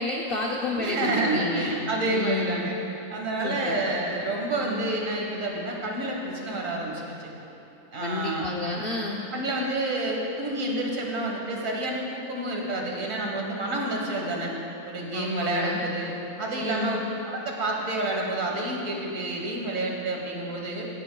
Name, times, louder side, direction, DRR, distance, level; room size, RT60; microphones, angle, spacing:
voice 1, 0.0-1.7 2.1-2.7 3.4-3.8 4.6-4.9 8.0-9.2 15.1-15.8 16.5-17.0, left 3 dB, 55° left, -1 dB, 0.7 m, -30 dB
voice 2, 0.7-2.8 3.1-7.3 7.9-8.5 9.3-14.5 14.9-16.1 16.4-17.0 17.3-20.9, right 2 dB, 60° right, -1 dB, 1.8 m, -29 dB
17.5 x 9.7 x 2.3 m, 2.9 s
omnidirectional pair, 1.6 m